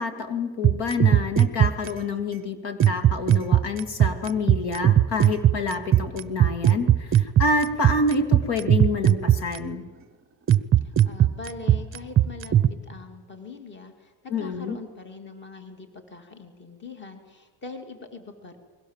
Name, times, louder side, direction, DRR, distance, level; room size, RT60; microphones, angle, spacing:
voice 1, 0.0-9.8 14.3-14.8, left 3 dB, 55° left, 8 dB, 2.6 m, -27 dB
sound 1, 0.6-1.9 2.8-9.6 10.5-12.7, right 11 dB, 30° right, 0.7 m, -17 dB
voice 2, 10.8-12.6 12.8-18.6, left 3 dB, 25° left, 6 dB, 2.6 m, -42 dB
29.5 x 21.5 x 7.4 m, 1.4 s
cardioid pair, 160°, 47 cm